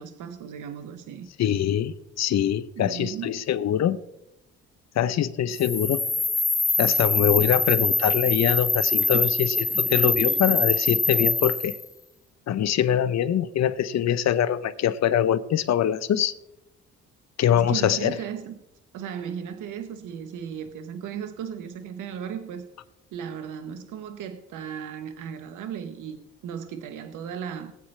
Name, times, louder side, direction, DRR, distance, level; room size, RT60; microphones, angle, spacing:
voice 1, 0.0-1.3 2.8-3.4 9.1-9.2 9.8-9.9 10.3-10.4 17.5-18.6 18.9-22.7 23.1-27.7, right 8 dB, 85° right, 1.0 m, -36 dB
voice 2, 1.4-4.0 4.9-6.0 6.8-11.8 12.5-16.3 17.4-18.2, left 10 dB, 60° left, 0.8 m, -23 dB
sound 1, 5.5-11.8, left 3 dB, 10° left, 0.4 m, -24 dB
19.5 x 8.4 x 3.3 m
cardioid pair, 90°, 30 cm